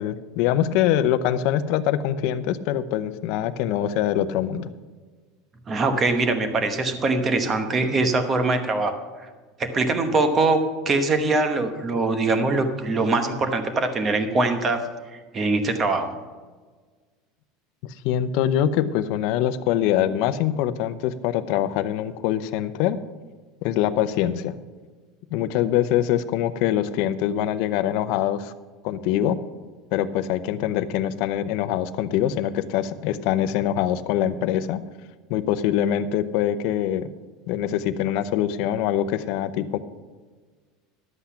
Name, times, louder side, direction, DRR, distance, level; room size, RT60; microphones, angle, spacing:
voice 1, 0.0-4.7 18.0-23.0 23.6-24.5 25.3-28.5 28.8-29.4 29.9-34.8 35.3-37.1 37.5-39.8, left 11 dB, 50° left, 10 dB, 0.7 m, -24 dB
voice 2, 5.7-8.9 9.6-10.6 10.9-14.8 15.3-16.1, right 3 dB, 20° right, 7 dB, 1.0 m, -22 dB
12.0 x 8.1 x 5.7 m, 1.4 s
cardioid pair, 170°, 0 cm